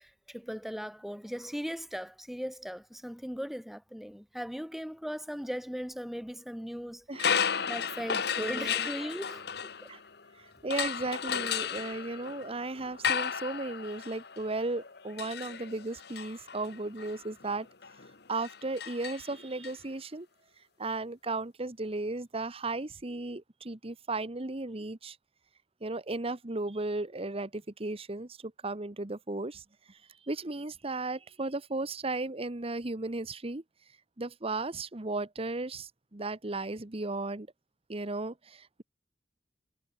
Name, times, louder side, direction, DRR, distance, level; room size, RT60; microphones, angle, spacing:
voice 1, 0.0-7.1 7.7-9.5 9.8-9.9, equal, ahead, 1.7 m, -38 dB
sound 1, 7.1-10.2 10.7-19.7, left 7 dB, 65° left, 1.5 m, -34 dB
voice 2, 8.4-8.7 9.9-10.0 10.4-17.7 18.3-20.3 20.8-25.2 25.8-28.4 28.6-30.0 30.2-33.6 34.2-37.5 37.9-38.8, right 2 dB, 35° right, 1.2 m, -35 dB
head